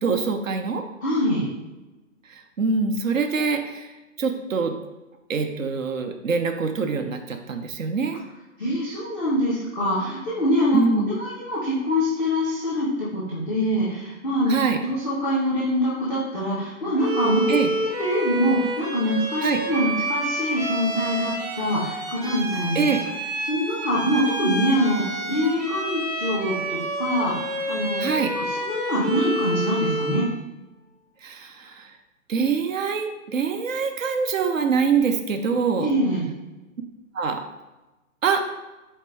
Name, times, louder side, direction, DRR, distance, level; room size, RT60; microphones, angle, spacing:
voice 1, 0.0-0.8 2.3-4.7 5.3-8.2 10.7-11.1 14.5-14.8 17.5-17.7 19.4-19.6 22.7-23.0 28.0-28.3 31.2-31.9 32.3-35.9 37.1-37.4 38.2-38.4, right 5 dB, 70° right, 6 dB, 0.7 m, -24 dB
voice 2, 1.0-1.5 8.6-14.6 14.8-22.8 23.5-28.0 28.3-30.2 35.8-36.3, equal, ahead, -9 dB, 0.4 m, -24 dB
Bowed string instrument, 17.0-30.4, right 1 dB, 30° right, 0.8 m, -29 dB
4.4 x 2.8 x 3.3 m, 1.1 s
figure-of-eight pair, 140°, 40 cm